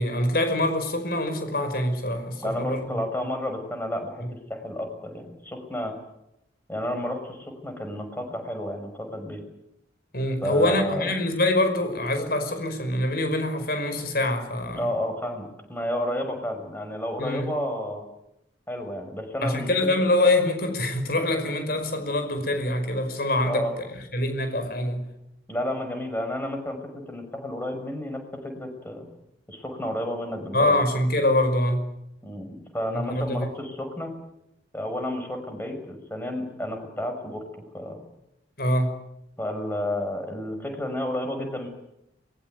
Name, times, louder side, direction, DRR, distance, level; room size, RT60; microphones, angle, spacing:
voice 1, 0.0-3.0 4.2-4.3 10.1-14.9 17.2-17.5 19.4-25.1 30.5-31.9 33.0-33.5 38.6-39.0, left 1 dB, 55° left, 5.4 m, -25 dB
voice 2, 2.4-5.9 6.7-9.4 10.4-11.1 14.7-18.0 18.7-19.9 23.4-23.7 25.5-29.1 29.5-30.8 32.2-34.1 34.7-37.4 37.7-38.0 39.4-41.7, left 1 dB, 10° left, 6.0 m, -31 dB
24.0 x 22.0 x 9.3 m
head